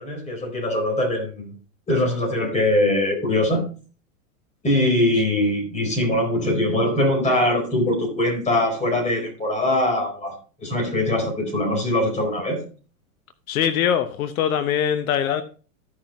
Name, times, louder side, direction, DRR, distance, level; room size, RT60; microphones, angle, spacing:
voice 1, 0.0-1.5 1.9-3.6 4.6-12.6, left 1 dB, 15° left, 4.2 m, -22 dB
voice 2, 13.5-15.4, left 9 dB, 80° left, 1.0 m, -22 dB
14.5 x 6.0 x 3.0 m
supercardioid pair, 125°, 42 cm